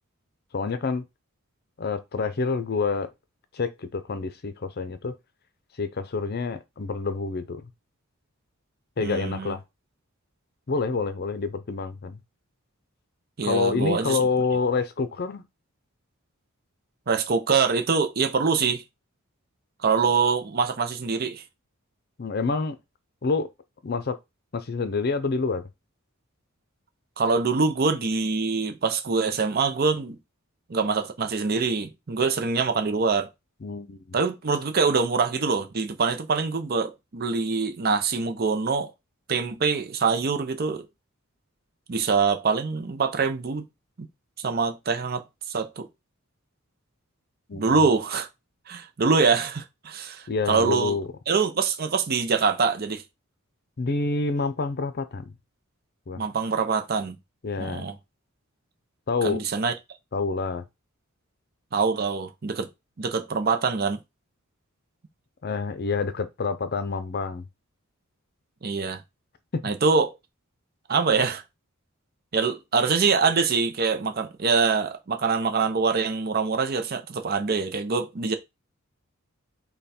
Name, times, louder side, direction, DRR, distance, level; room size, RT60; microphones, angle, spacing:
voice 1, 0.5-1.0 1.8-3.1 3.5-5.1 5.8-7.7 9.0-9.6 10.7-12.2 13.4-15.4 22.2-22.8 23.2-23.5 23.8-24.2 24.5-25.7 33.6-34.2 47.5-47.9 50.3-51.1 53.8-55.2 56.1-56.2 57.4-57.9 59.1-59.4 60.1-60.6 65.4-67.5 69.5-69.6, left 4 dB, 45° left, 0.6 m, -27 dB
voice 2, 9.0-9.5 13.4-14.2 17.1-18.8 19.8-21.4 27.2-30.2 30.7-33.3 34.1-38.9 39.3-40.9 41.9-43.6 44.0-44.1 44.4-45.9 47.5-48.3 48.7-51.0 51.3-53.0 56.2-57.2 57.6-58.0 59.2-59.7 61.7-62.7 63.0-64.0 68.6-69.0 69.6-70.1 70.9-71.4 72.3-78.3, right 5 dB, 45° right, 0.6 m, -24 dB
5.4 x 2.3 x 4.2 m
head